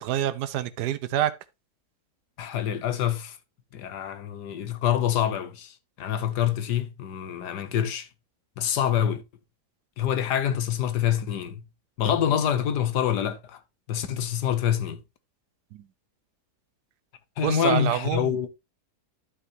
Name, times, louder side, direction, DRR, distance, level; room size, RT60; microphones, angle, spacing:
voice 1, 0.0-1.3 15.7-15.9 17.4-18.4, right 11 dB, 80° right, 1.3 m, -27 dB
voice 2, 2.4-3.4 3.7-8.1 8.6-9.2 10.0-11.6 12.0-13.6 13.9-15.0 17.4-18.5, left 9 dB, 85° left, 1.5 m, -26 dB
11.5 x 5.7 x 3.0 m
omnidirectional pair, 1.7 m